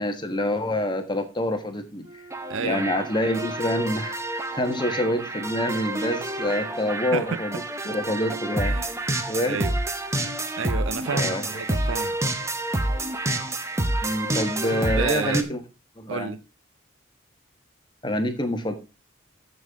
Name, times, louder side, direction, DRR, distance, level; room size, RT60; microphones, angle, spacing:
voice 1, 0.0-2.2 2.6-8.8 9.3-9.6 11.1-11.6 14.0-15.6 16.0-16.3 18.0-18.7, left 1 dB, 20° left, 1.2 m, -27 dB
Wind instrument woodwind instrument, 2.0-6.9, left 1 dB, 30° right, 4.5 m, -45 dB
sound 1, 2.3-15.4, right 1 dB, 15° right, 0.8 m, -28 dB
voice 2, 2.5-2.9 7.1-7.4 8.1-8.9 9.2-9.7 10.6-12.2 14.6-15.5 16.1-16.4, right 5 dB, 70° right, 0.5 m, -31 dB
13.5 x 5.5 x 3.6 m
head